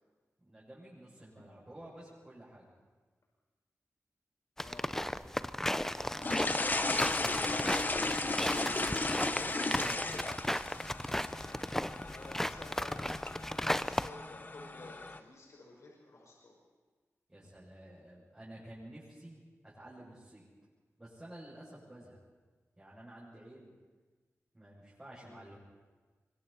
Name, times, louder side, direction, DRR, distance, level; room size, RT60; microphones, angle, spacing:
voice 1, 0.4-2.8 8.6-10.1 17.3-20.5 21.0-22.2 22.8-23.7 24.5-25.6, right 1 dB, 20° right, -8 dB, 7.9 m, -51 dB
voice 2, 4.6-4.9 5.7-8.0 12.0-13.1 13.8-16.6 25.2-25.5, left 2 dB, 75° left, -2 dB, 5.1 m, -53 dB
sound 1, 4.6-14.1, left 1 dB, 5° left, 0.6 m, -35 dB
sound 2, 6.2-15.2, left 2 dB, 35° left, 1.1 m, -35 dB
24.5 x 24.5 x 4.5 m, 1.4 s
wide cardioid pair, 90°, 5 cm